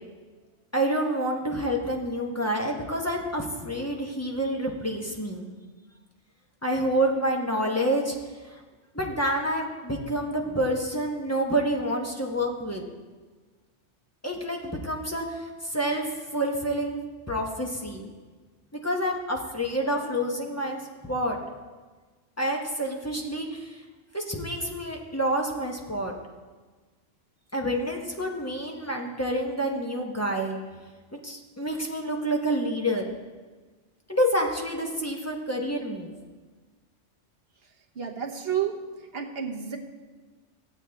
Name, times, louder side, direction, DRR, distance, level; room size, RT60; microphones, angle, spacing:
voice 1, 0.7-5.5 6.6-8.1 8.5-8.6 8.9-12.8 14.2-16.1 16.3-17.0 17.3-18.1 18.7-21.4 22.4-23.8 24.1-26.1 27.5-30.6 31.1-33.0 34.1-36.1, right 1 dB, 15° left, 0 dB, 0.9 m, -28 dB
voice 2, 37.9-39.8, right 8 dB, 55° right, 0 dB, 1.2 m, -31 dB
15.0 x 8.0 x 3.4 m, 1.4 s
omnidirectional pair, 1.3 m